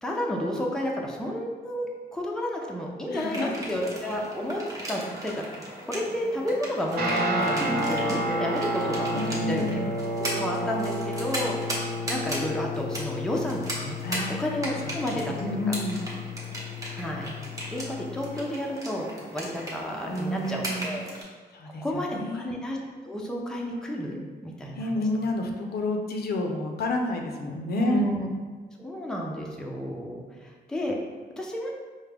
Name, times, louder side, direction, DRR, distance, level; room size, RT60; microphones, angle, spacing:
voice 1, 0.0-4.6 4.9-5.6 5.9-9.8 10.2-11.8 12.1-14.0 14.4-15.4 15.7-15.8 16.9-17.3 17.7-19.1 19.3-21.1 21.8-22.8 23.0-25.0 27.8-28.3 28.8-30.9 31.4-31.7, equal, 5° left, -2 dB, 0.5 m, -31 dB
voice 2, 3.1-3.7 9.1-9.9 14.0-14.4 14.8-15.0 15.4-16.1 20.1-21.0 21.5-22.5 24.7-28.1, left 2 dB, 70° left, 2 dB, 0.5 m, -30 dB
sound 1, 3.2-21.2, equal, 20° right, 0.8 m, -37 dB
Guitar, 6.9-18.4, equal, 65° right, 0.8 m, -31 dB
4.6 x 2.1 x 3.3 m, 1.4 s
wide cardioid pair, 130°, 17 cm